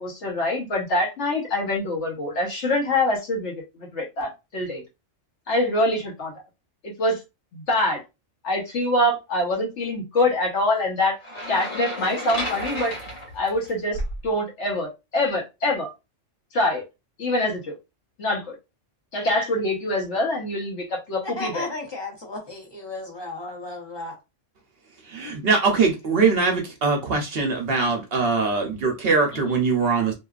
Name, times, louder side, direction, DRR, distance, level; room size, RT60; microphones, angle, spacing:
voice 1, 0.0-4.8 5.5-6.3 6.8-7.2 7.5-8.0 8.4-11.2 11.5-12.9 13.3-15.9 16.5-16.8 17.2-17.8 18.2-18.5 19.1-21.6 29.3-29.6, left 1 dB, 70° left, 1.2 m, -25 dB
sound 1, 11.2-14.3, equal, 85° left, 1.5 m, -32 dB
voice 2, 21.2-24.1, left 2 dB, 25° left, 0.7 m, -34 dB
voice 3, 25.1-30.1, right 4 dB, 60° right, 0.7 m, -22 dB
2.8 x 2.2 x 2.4 m
omnidirectional pair, 1.3 m